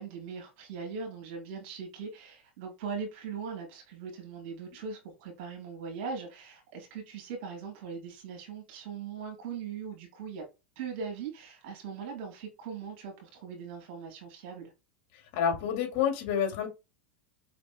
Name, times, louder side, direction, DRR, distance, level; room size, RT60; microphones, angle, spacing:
voice 1, 0.0-10.4 10.8-14.7, right 6 dB, 60° right, 2.2 m, -40 dB
voice 2, 15.3-16.7, left 8 dB, 60° left, 2.4 m, -28 dB
5.2 x 4.2 x 2.3 m
hypercardioid pair, 95°, 6 cm